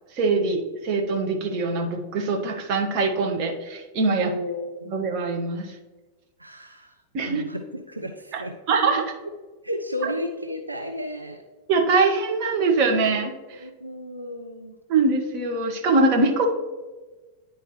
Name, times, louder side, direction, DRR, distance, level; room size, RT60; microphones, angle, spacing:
voice 1, 0.2-4.3 4.9-5.7 7.1-7.4 8.3-8.4 8.7-9.1 11.7-13.6 14.9-16.5, right 3 dB, 40° right, 2 dB, 1.1 m, -23 dB
voice 2, 4.2-4.9 6.4-6.9 7.2-8.5 9.6-11.4 13.6-14.7, left 1 dB, 85° right, 4 dB, 0.5 m, -33 dB
10.0 x 4.6 x 3.1 m, 1.2 s
figure-of-eight pair, 90°, 0 cm